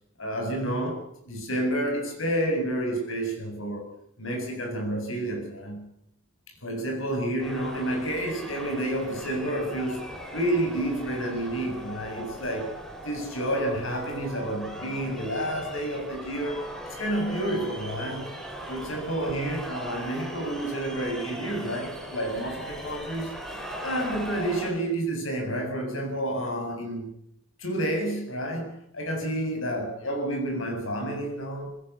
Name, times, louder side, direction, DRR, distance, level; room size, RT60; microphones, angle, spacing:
voice 1, 0.2-3.9 4.2-5.9 6.6-12.7 13.0-18.4 18.7-23.3 23.8-27.1 27.6-31.7, right 1 dB, 90° left, 8.0 m, -30 dB
sound 1, 7.4-24.7, right 1 dB, ahead, 5.2 m, -39 dB
20.5 x 17.5 x 8.4 m
head